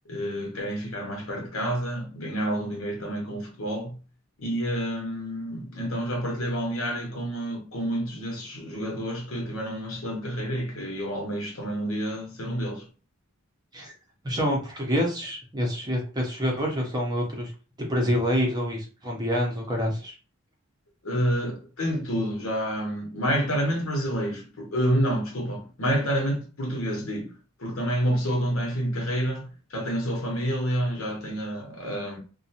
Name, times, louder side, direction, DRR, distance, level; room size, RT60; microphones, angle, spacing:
voice 1, 0.1-4.0 4.4-12.9 21.0-27.3 27.6-32.2, equal, 65° left, 0.9 m, -29 dB
voice 2, 14.2-17.5 17.8-20.2, equal, 20° right, 0.6 m, -27 dB
2.6 x 2.2 x 2.7 m
head